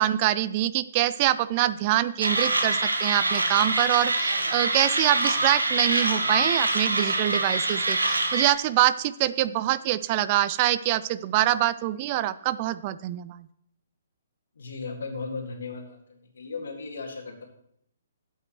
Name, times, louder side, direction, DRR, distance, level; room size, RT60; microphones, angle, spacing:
voice 1, 0.0-13.4, right 14 dB, 35° right, 15 dB, 0.3 m, -25 dB
Mechanisms, 2.2-8.5, right 2 dB, 85° right, 1.3 m, -25 dB
voice 2, 14.6-17.4, left 4 dB, 70° left, 2 dB, 2.0 m, -36 dB
12.0 x 8.0 x 3.1 m, 0.70 s
figure-of-eight pair, 130°, 0 cm